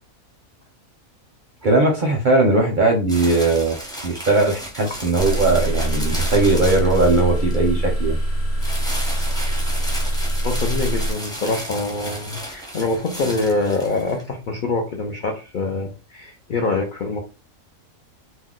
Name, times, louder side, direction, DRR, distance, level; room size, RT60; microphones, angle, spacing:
voice 1, 1.6-3.8 4.0-8.2, right 2 dB, 55° right, 1 dB, 0.5 m, -19 dB
sound 1, 3.1-7.7 8.6-14.2, equal, 5° left, 0.4 m, -33 dB
sound 2, 5.2-11.1, right 1 dB, 55° left, 0.9 m, -23 dB
voice 2, 10.4-17.2, left 3 dB, 75° left, 2 dB, 0.4 m, -25 dB
2.6 x 2.1 x 3.6 m, 0.32 s
omnidirectional pair, 1.5 m